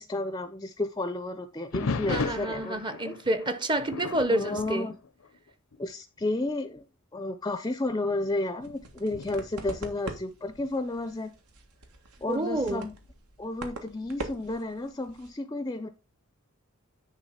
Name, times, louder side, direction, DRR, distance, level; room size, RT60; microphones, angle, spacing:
voice 1, 0.0-3.2 4.3-4.9 5.8-6.8 7.1-11.3 12.2-12.9 13.4-15.9, left 2 dB, 15° left, 0.5 m, -32 dB
sound 1, 1.7-5.9 6.2-6.5 7.2-7.3 8.0-10.7 12.5-13.1, left 4 dB, 65° left, 0.6 m, -37 dB
voice 2, 2.1-4.9 12.3-12.9, right 1 dB, 20° right, 0.7 m, -29 dB
sound 2, 8.6-15.3, right 2 dB, 85° right, 1.7 m, -43 dB
10.0 x 3.7 x 5.6 m
head